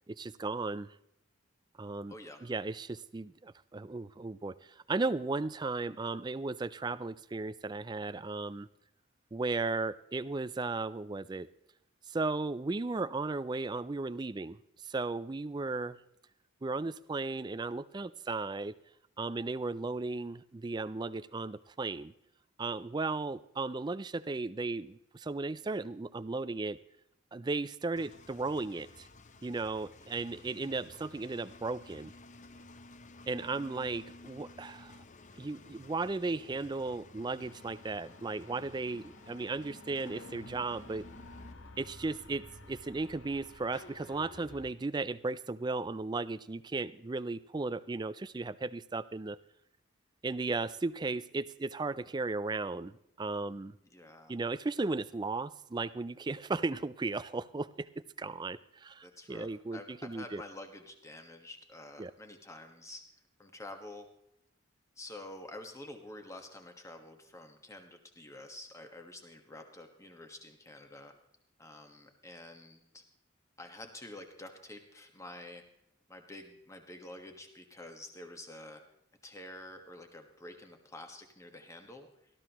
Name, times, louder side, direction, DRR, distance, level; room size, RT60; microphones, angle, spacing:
voice 1, 0.1-0.9 1.8-2.1 2.4-8.7 9.3-11.5 12.1-16.0 16.6-18.7 19.2-22.1 22.6-26.8 27.3-29.1 29.4-32.1 33.3-35.0 35.4-41.1 41.8-49.4 50.2-53.7 54.3-57.9 58.2-60.4 62.0-62.1, right 3 dB, 20° right, 16 dB, 0.3 m, -35 dB
voice 2, 2.1-2.4 53.9-54.4 59.0-63.0 63.4-64.1 65.0-71.1 71.6-73.0 73.6-75.6 76.1-78.8 79.2-82.1, left 1 dB, 15° left, 5 dB, 1.4 m, -48 dB
Engine, 28.0-41.5, left 2 dB, 35° left, 0.6 m, -54 dB
sound 1, 37.4-44.7, left 2 dB, 70° left, 1.2 m, -53 dB
18.5 x 13.0 x 3.0 m, 0.81 s
head